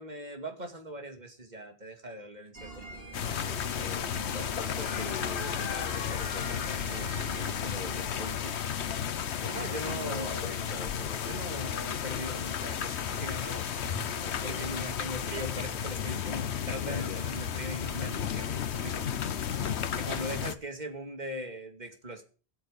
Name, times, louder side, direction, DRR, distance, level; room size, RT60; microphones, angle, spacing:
voice 1, 0.0-3.7 9.4-10.9 11.3-13.7 14.4-19.1 20.0-22.2, right 1 dB, 40° right, 5 dB, 2.4 m, -40 dB
sound 1, 2.5-8.2, right 2 dB, 60° right, 3.4 m, -44 dB
sound 2, 3.1-20.5, left 8 dB, 90° left, 1.1 m, -33 dB
voice 2, 3.7-8.5 9.4-11.2 14.2-14.6 16.8-17.2 19.5-19.8, left 2 dB, 40° left, 0 dB, 2.5 m, -43 dB
sound 3, 12.5-15.2 15.8-15.9, left 1 dB, 10° left, 4.0 m, -46 dB
13.5 x 8.8 x 6.7 m, 0.39 s
omnidirectional pair, 1.1 m